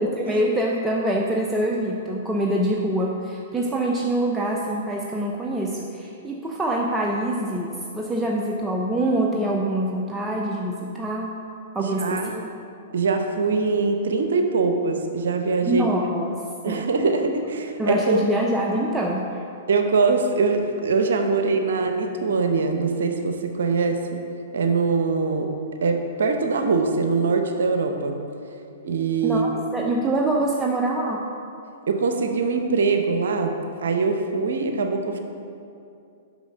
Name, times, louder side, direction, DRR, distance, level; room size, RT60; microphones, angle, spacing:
voice 1, 0.0-11.4 11.7-12.4 15.6-16.9 17.8-19.4 29.2-31.3, right 1 dB, 10° right, -1 dB, 0.6 m, -25 dB
voice 2, 11.8-12.4 12.9-15.9 16.6-18.2 19.7-24.2 24.5-25.5 25.8-28.2 28.8-29.5 31.9-33.5 33.8-35.2, right 4 dB, 70° right, 5 dB, 0.7 m, -23 dB
6.2 x 5.7 x 6.5 m, 2.6 s
hypercardioid pair, 115°, 0 cm